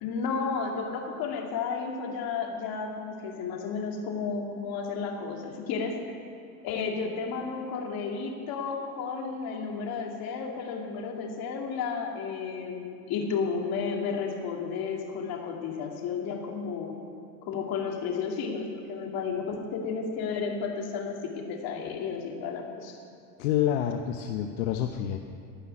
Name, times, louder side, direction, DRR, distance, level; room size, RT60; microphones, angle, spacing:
voice 1, 0.0-6.2 6.6-17.0 17.4-23.0, left 5 dB, 55° left, 1 dB, 2.4 m, -32 dB
voice 2, 23.4-25.2, left 10 dB, 80° left, 5 dB, 0.9 m, -28 dB
15.5 x 5.8 x 9.6 m, 2.5 s
hypercardioid pair, 90°, 42 cm